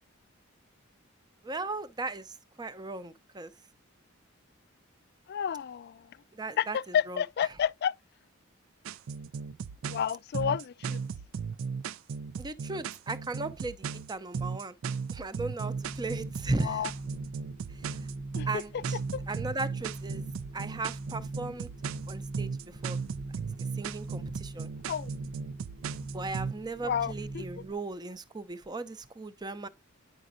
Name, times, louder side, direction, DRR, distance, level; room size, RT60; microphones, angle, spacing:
voice 1, 1.4-3.5 6.3-7.2 12.4-14.8 15.1-16.8 17.7-18.0 18.5-19.0 19.3-20.2 20.5-21.7 22.1-23.0 23.8-24.7 26.1-29.7, right 3 dB, 20° right, 0.5 m, -37 dB
voice 2, 5.3-6.1 6.6-7.9 9.9-11.0 16.6-16.9 18.3-18.5 19.1-19.2 24.9-25.1 26.8-27.4, left 8 dB, 50° left, 0.3 m, -30 dB
sound 1, 8.9-26.5, right 5 dB, 75° right, 0.4 m, -36 dB
sound 2, 15.6-27.7, right 2 dB, 55° right, 0.9 m, -42 dB
9.7 x 5.1 x 2.5 m
head